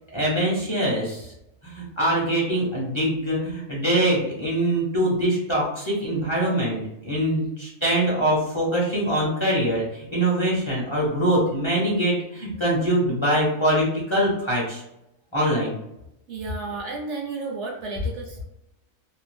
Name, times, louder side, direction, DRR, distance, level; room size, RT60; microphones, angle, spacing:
voice 1, 0.1-1.3 1.7-14.8 15.3-15.7, right 1 dB, 25° left, -5 dB, 0.7 m, -23 dB
voice 2, 16.3-18.5, right 3 dB, 65° right, 0 dB, 0.9 m, -32 dB
2.7 x 2.2 x 3.3 m, 0.84 s
omnidirectional pair, 1.4 m